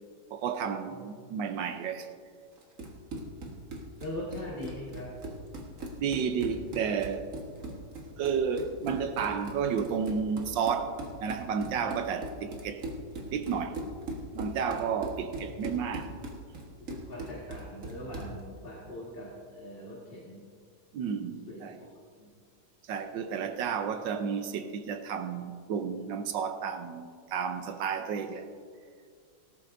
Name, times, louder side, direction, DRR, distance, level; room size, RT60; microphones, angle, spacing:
voice 1, 0.3-2.1 6.0-7.3 8.2-12.8 13.3-13.8 14.3-16.1 20.9-21.8 22.9-28.5, right 6 dB, 75° right, 8 dB, 1.5 m, -32 dB
Run, 2.6-18.4, right 2 dB, 45° right, 1.7 m, -40 dB
voice 2, 4.0-5.1 11.6-11.7 16.9-20.4 21.5-22.3, left 1 dB, 30° left, -5 dB, 1.8 m, -41 dB
18.0 x 13.0 x 2.6 m, 2.1 s
omnidirectional pair, 2.1 m